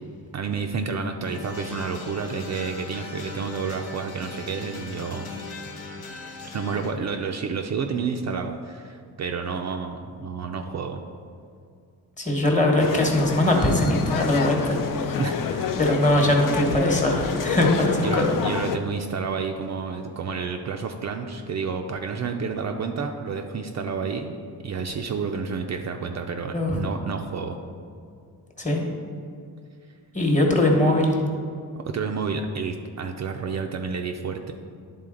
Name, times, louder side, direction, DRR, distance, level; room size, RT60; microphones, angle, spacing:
voice 1, 0.3-5.5 6.4-11.0 15.2-15.8 18.0-24.4 24.6-27.6 31.8-34.5, right 5 dB, 50° right, 4 dB, 0.4 m, -30 dB
sound 1, 1.2-6.9, left 3 dB, 75° left, 1.0 m, -39 dB
voice 2, 12.2-15.2 15.8-18.3 26.5-26.8 28.6-28.8 30.1-31.1, left 1 dB, 20° left, 0 dB, 1.1 m, -21 dB
sound 2, 12.8-18.8, left 6 dB, 60° left, 0.5 m, -28 dB
10.5 x 3.8 x 3.8 m, 2.3 s
wide cardioid pair, 130°, 37 cm